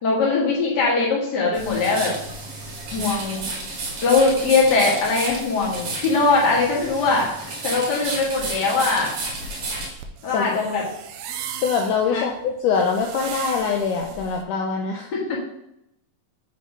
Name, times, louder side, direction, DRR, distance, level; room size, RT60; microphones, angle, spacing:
voice 1, 0.0-2.1 2.9-3.5 4.0-7.3 7.6-9.1 10.2-10.8 12.1-12.3 15.1-15.4, left 3 dB, 40° left, -4 dB, 1.7 m, -21 dB
sound 1, 1.5-9.9, right 3 dB, 60° right, 3.0 m, -32 dB
sound 2, 9.3-14.4, right 8 dB, 85° right, 2.6 m, -37 dB
voice 2, 11.4-15.1, left 5 dB, 80° left, 2 dB, 1.9 m, -24 dB
7.7 x 3.2 x 5.4 m, 0.80 s
omnidirectional pair, 4.2 m